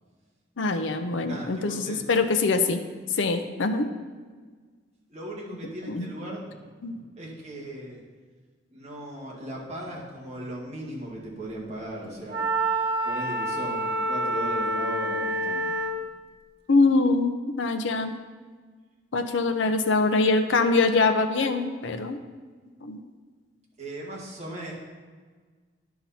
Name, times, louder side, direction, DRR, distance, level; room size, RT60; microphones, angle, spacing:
voice 1, 0.6-2.8 3.1-3.9 5.9-6.1 6.8-7.0 16.7-18.1 19.1-22.2 22.8-23.0, left 3 dB, 85° left, 7 dB, 0.6 m, -24 dB
voice 2, 1.2-2.2 5.1-8.0 8.7-12.5 13.0-15.8 23.8-24.7, right 1 dB, 35° right, -3 dB, 1.9 m, -38 dB
Wind instrument woodwind instrument, 12.3-16.0, right 1 dB, 60° right, 0.9 m, -27 dB
10.5 x 5.8 x 4.2 m, 1.5 s
head